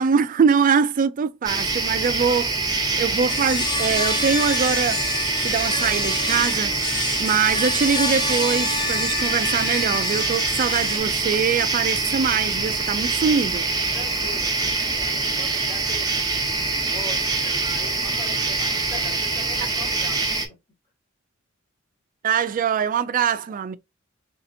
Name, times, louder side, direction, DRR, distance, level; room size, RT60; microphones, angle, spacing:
voice 1, 0.0-2.5 3.0-5.0 5.4-6.7 7.2-13.7 19.6-19.7 22.2-23.8, right 6 dB, 40° right, 0.3 m, -23 dB
sound 1, 1.4-20.5, right 3 dB, 20° right, 0.8 m, -24 dB
voice 2, 2.7-3.2 13.9-16.2 16.8-20.6 23.3-23.6, left 2 dB, 45° left, 2.0 m, -41 dB
sound 2, 3.3-11.0, left 4 dB, 20° left, 0.5 m, -29 dB
4.0 x 2.8 x 2.6 m
head